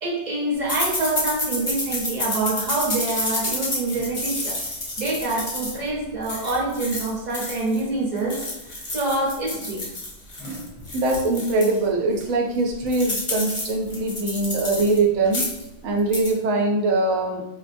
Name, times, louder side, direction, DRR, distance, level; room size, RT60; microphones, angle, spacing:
voice 1, 0.0-4.6 5.0-8.4 8.9-9.8, right 2 dB, 40° right, -3 dB, 0.9 m, -26 dB
sound 1, 0.7-7.8 8.2-11.8 12.2-12.3 12.5-15.0 15.2-15.7 16.0-16.3, left 2 dB, 35° left, 0.5 m, -30 dB
voice 2, 10.9-15.5 15.8-17.4, right 2 dB, 80° right, 1 dB, 1.0 m, -22 dB
4.3 x 2.1 x 2.6 m, 0.96 s
omnidirectional pair, 1.4 m